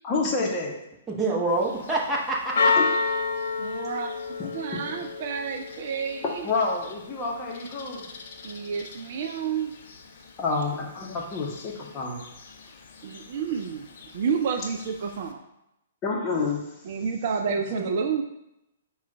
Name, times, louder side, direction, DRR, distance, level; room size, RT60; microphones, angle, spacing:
voice 1, 0.0-0.7 2.8-2.9 4.4-4.5 6.4-8.1 10.4-12.2 16.0-16.6, left 4 dB, 25° left, -2 dB, 0.8 m, -28 dB
voice 2, 1.1-2.7 17.7-17.9, right 2 dB, 15° right, -3 dB, 0.9 m, -27 dB
Church bell, 1.5-15.3, left 4 dB, 55° left, 0.4 m, -33 dB
voice 3, 3.6-4.1 4.5-6.5 8.4-9.7 13.0-13.9 14.1-15.4 16.8-18.2, right 6 dB, 50° right, 5 dB, 0.3 m, -29 dB
4.8 x 2.3 x 4.0 m, 0.86 s
figure-of-eight pair, 115°, 0 cm